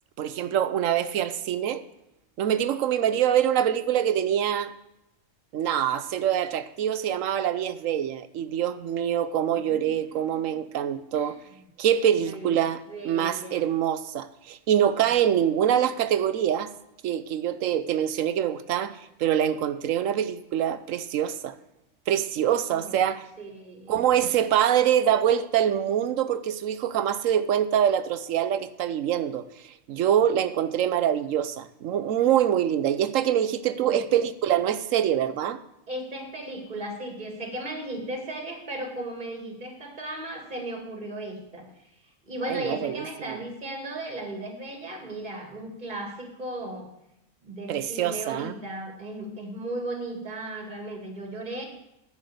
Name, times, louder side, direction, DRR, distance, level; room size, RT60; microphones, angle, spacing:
voice 1, 0.2-1.8 2.4-4.7 5.5-11.4 11.8-12.8 13.0-16.7 17.0-21.5 22.1-23.3 23.9-29.5 29.9-35.6 42.5-43.4 47.7-48.5, right 10 dB, 80° right, 1.0 m, -25 dB
voice 2, 9.6-10.7 11.1-11.3 12.1-13.6 22.7-23.0 23.4-24.0 33.7-34.0 35.9-41.8 42.2-46.9 47.4-51.7, right 1 dB, 35° right, 2.1 m, -36 dB
10.5 x 6.0 x 7.8 m
omnidirectional pair, 1.4 m